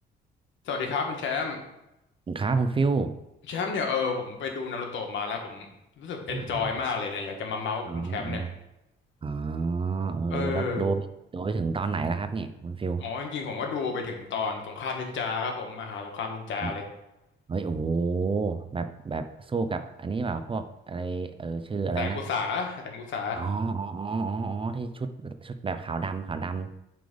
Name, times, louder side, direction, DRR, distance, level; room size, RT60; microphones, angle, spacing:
voice 1, 0.6-1.6 3.5-5.7 6.0-8.4 10.3-10.9 13.0-16.8 22.0-23.4, left 5 dB, 75° left, 3 dB, 1.3 m, -31 dB
voice 2, 2.3-3.2 6.3-6.7 7.9-8.5 9.2-11.1 11.3-13.0 16.6-16.8 17.5-22.2 23.3-26.7, right 4 dB, 25° right, 10 dB, 0.5 m, -29 dB
7.7 x 3.4 x 5.2 m, 0.89 s
cardioid pair, 90°, 20 cm